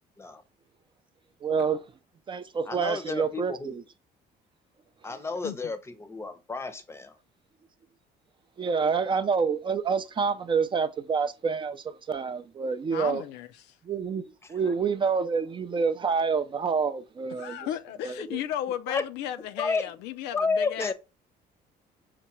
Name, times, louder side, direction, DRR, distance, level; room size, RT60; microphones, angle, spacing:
voice 1, 1.4-1.8 2.3-3.8 8.6-13.2 13.8-17.7 18.0-18.2, right 5 dB, 30° right, 0.3 m, -27 dB
voice 2, 2.7-3.7 5.0-7.2 18.9-19.0 19.6-19.9 20.3-20.9, left 4 dB, 15° left, 0.6 m, -31 dB
voice 3, 12.9-13.5 17.4-20.9, left 11 dB, 85° left, 0.4 m, -35 dB
5.7 x 2.2 x 2.9 m
cardioid pair, 110°, 17 cm